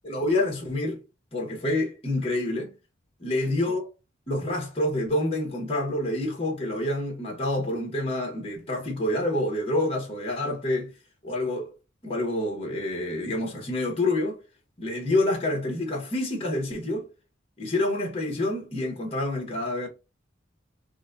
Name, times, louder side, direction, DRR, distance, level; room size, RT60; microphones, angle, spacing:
voice 1, 0.0-1.0 1.3-2.7 3.2-3.9 4.3-10.9 11.2-11.7 12.0-14.4 14.8-17.1 17.6-19.9, left 1 dB, 30° left, 1.1 m, -27 dB
4.0 x 2.2 x 2.4 m
head